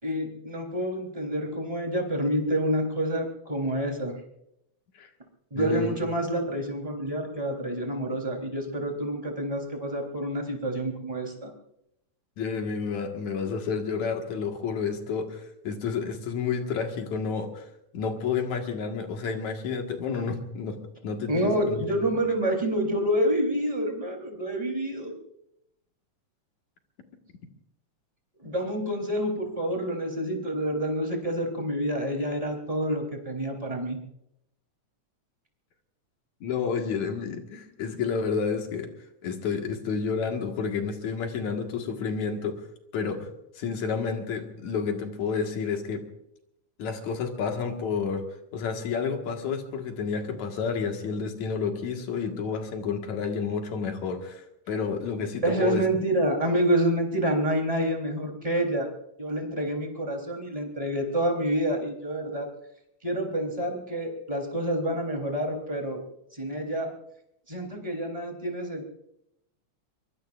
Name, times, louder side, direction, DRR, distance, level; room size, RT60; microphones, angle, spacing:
voice 1, 0.0-4.2 5.5-11.5 21.3-25.2 28.4-34.0 55.4-58.9 59.2-62.5 63.0-66.0 66.3-66.9 67.5-68.8, right 1 dB, 10° right, 2 dB, 3.7 m, -28 dB
voice 2, 5.5-6.0 12.4-17.7 17.9-20.8 21.0-21.8 36.4-38.9 39.2-42.6 42.9-43.3 43.6-46.0 46.8-48.2 48.5-55.8, left 5 dB, 70° left, 3 dB, 3.2 m, -30 dB
24.0 x 23.5 x 2.6 m, 0.79 s
omnidirectional pair, 3.4 m